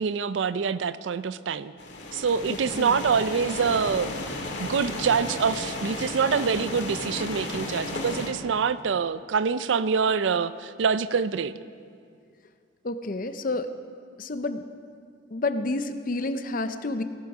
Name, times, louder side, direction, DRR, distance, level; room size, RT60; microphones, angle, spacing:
voice 1, 0.0-1.7 2.1-4.2 4.6-11.5, right 6 dB, 75° right, 15 dB, 0.4 m, -25 dB
sound 1, 1.8-8.3, left 2 dB, 70° left, 1.9 m, -34 dB
voice 2, 2.5-3.0 12.8-13.7 14.2-14.6 15.3-17.0, left 2 dB, 45° left, 10 dB, 0.6 m, -29 dB
17.0 x 11.5 x 4.8 m, 2.3 s
head